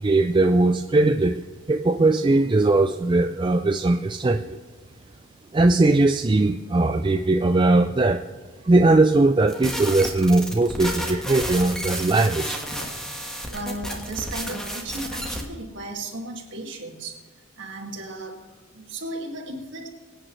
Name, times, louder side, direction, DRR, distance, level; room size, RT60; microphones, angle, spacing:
voice 1, 0.0-4.6 5.5-8.2 8.6-12.6, right 2 dB, 20° right, 6 dB, 0.3 m, -20 dB
sound 1, 9.5-15.4, equal, ahead, 1.4 m, -31 dB
voice 2, 13.5-17.2 17.6-19.9, right 2 dB, 55° right, 1 dB, 2.0 m, -35 dB
24.0 x 8.9 x 3.2 m, 1.4 s
head